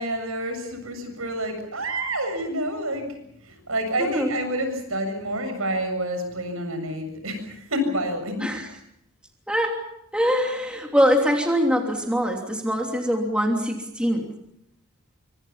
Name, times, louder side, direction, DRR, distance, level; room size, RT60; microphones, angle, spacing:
voice 1, 0.0-8.3, right 1 dB, 75° right, 6 dB, 7.3 m, -28 dB
voice 2, 4.0-4.3 8.4-8.7 9.5-9.8 10.1-14.3, equal, 5° right, 1 dB, 3.0 m, -23 dB
26.5 x 25.0 x 5.8 m, 0.77 s
head